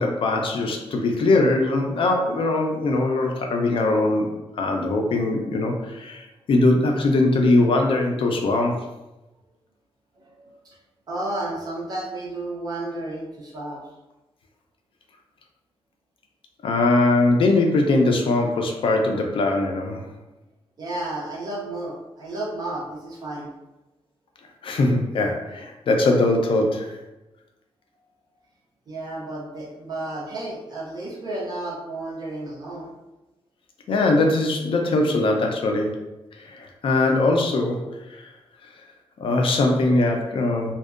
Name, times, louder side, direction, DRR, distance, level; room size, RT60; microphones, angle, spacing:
voice 1, 0.0-8.9 16.6-20.0 24.6-27.0 33.9-35.9 36.4-38.3 39.2-40.7, left 2 dB, 60° left, 2 dB, 0.3 m, -21 dB
voice 2, 10.2-10.8 11.1-13.8 20.8-23.5 28.9-32.9, right 2 dB, 40° right, -4 dB, 0.6 m, -32 dB
2.6 x 2.1 x 2.4 m, 1.0 s
wide cardioid pair, 175°, 10 cm